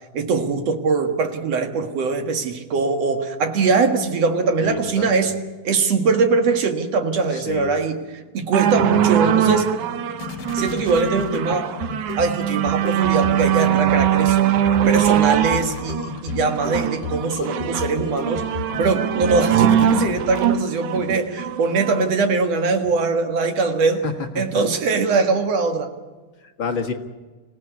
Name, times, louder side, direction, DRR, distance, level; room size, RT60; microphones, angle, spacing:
voice 1, 0.1-5.3 5.6-9.7 10.5-11.7 12.2-14.4 14.9-18.5 18.8-24.0 24.4-25.9, right 4 dB, 55° right, 6 dB, 2.7 m, -21 dB
voice 2, 4.6-5.3 7.3-7.7 24.0-24.4 26.6-26.9, left 5 dB, 45° left, 3 dB, 2.1 m, -28 dB
sound 1, 8.2-20.9, left 8 dB, 75° left, 2.7 m, -34 dB
sound 2, 8.5-22.1 22.9-23.0, right 10 dB, 70° right, 2.3 m, -21 dB
26.0 x 16.5 x 9.5 m, 1.3 s
omnidirectional pair, 3.7 m